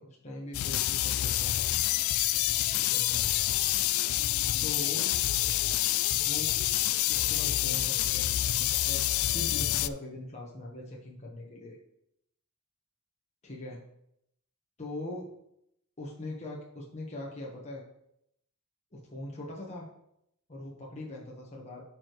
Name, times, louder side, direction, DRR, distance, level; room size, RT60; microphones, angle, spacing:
voice 1, 0.0-1.7 2.7-3.3 4.6-5.2 6.1-6.6 7.1-8.3 8.8-9.0 9.3-11.8 13.4-13.8 14.8-15.3 16.0-17.8 18.9-19.9 20.5-21.8, left 1 dB, 30° left, -3 dB, 1.2 m, -41 dB
sound 1, 0.5-9.9, left 14 dB, 65° left, 0.3 m, -27 dB
12.5 x 4.7 x 3.1 m, 0.77 s
head